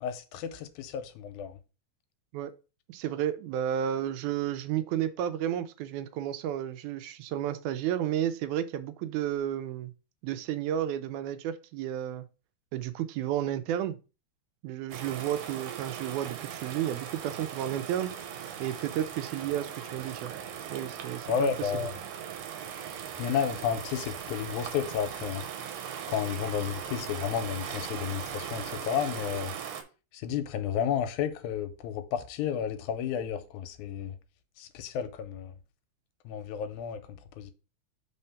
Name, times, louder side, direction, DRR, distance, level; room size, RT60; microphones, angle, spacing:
voice 1, 0.0-1.6 21.3-21.9 23.2-25.4 26.1-29.5 30.1-34.2 34.6-35.5 36.3-37.5, left 8 dB, 80° left, 2.1 m, -32 dB
voice 2, 2.9-9.9 10.2-12.3 12.7-14.0 14.6-18.2 18.6-20.3 20.7-21.7, right 11 dB, 85° right, 2.0 m, -32 dB
sound 1, 14.9-29.8, right 8 dB, 70° right, 1.9 m, -39 dB
4.3 x 3.9 x 5.6 m
omnidirectional pair, 3.4 m